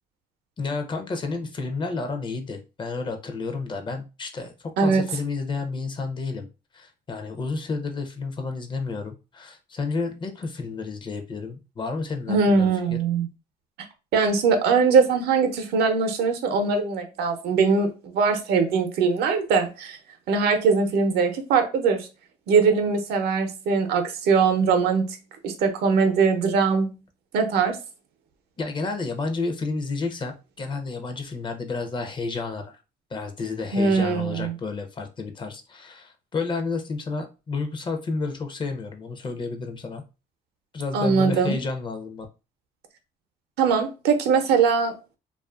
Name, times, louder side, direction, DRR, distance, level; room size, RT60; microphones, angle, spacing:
voice 1, 0.6-4.5 4.8-6.5 6.7-13.0 28.6-32.8 33.1-40.0 40.7-42.3, left 4 dB, 30° left, 0.4 m, -31 dB
voice 2, 12.3-13.3 14.1-20.0 20.3-22.1 22.5-25.2 25.4-26.9 27.3-27.8 33.7-34.5 40.9-41.6 43.6-44.9, right 5 dB, 75° right, 0.6 m, -21 dB
2.4 x 2.3 x 2.3 m
cardioid pair, 110°, 17 cm